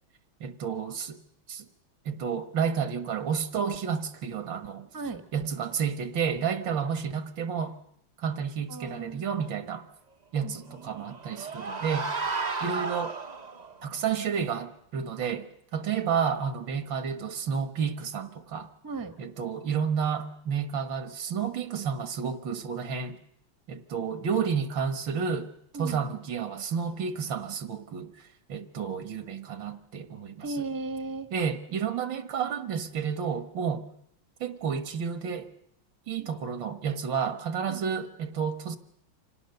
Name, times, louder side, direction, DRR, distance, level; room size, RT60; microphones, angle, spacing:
voice 1, 0.4-1.2 1.5-1.7 2.1-4.9 5.3-7.8 8.2-9.9 10.3-12.1 12.6-13.2 13.8-18.7 19.2-23.2 23.7-25.5 25.8-28.2 28.5-30.5 31.3-33.9 34.4-35.5 36.1-38.8, right 6 dB, 75° right, 2.0 m, -31 dB
voice 2, 4.9-5.2 8.7-9.6 10.4-11.1 18.8-19.2 25.7-26.1 30.4-31.3 36.2-36.3 37.7-37.9, right 3 dB, 15° right, 1.1 m, -37 dB
sound 1, 10.7-13.7, right 4 dB, 30° right, 0.8 m, -33 dB
26.0 x 18.0 x 6.7 m
omnidirectional pair, 2.1 m